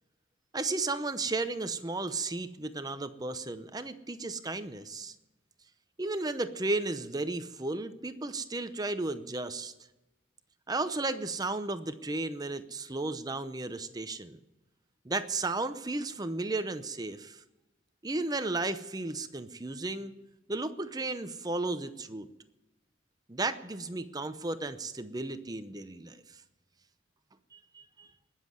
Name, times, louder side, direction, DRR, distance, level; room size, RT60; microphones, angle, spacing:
voice 1, 0.5-5.1 6.0-9.7 10.7-14.4 15.0-17.4 18.0-20.1 20.5-22.3 23.3-26.2 27.5-28.1, right 2 dB, 20° right, 11 dB, 0.7 m, -34 dB
20.0 x 7.4 x 7.8 m, 1.0 s
head